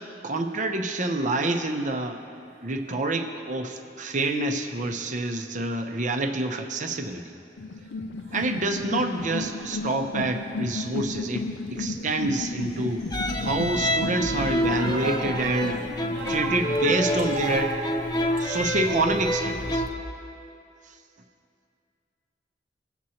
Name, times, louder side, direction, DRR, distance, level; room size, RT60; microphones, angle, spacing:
voice 1, 0.0-2.2 2.6-7.4 8.3-11.4 11.7-13.1 13.4-15.8 16.3-17.7 18.4-19.9 20.8-21.0, right 2 dB, 45° right, 5 dB, 0.8 m, -27 dB
sound 1, 7.6-17.6, left 3 dB, 75° left, 0.5 m, -34 dB
sound 2, 13.1-19.9, equal, 25° left, 0.7 m, -28 dB
voice 2, 14.7-18.6, right 2 dB, 70° right, -2 dB, 0.9 m, -33 dB
20.5 x 7.6 x 2.9 m, 2.7 s
head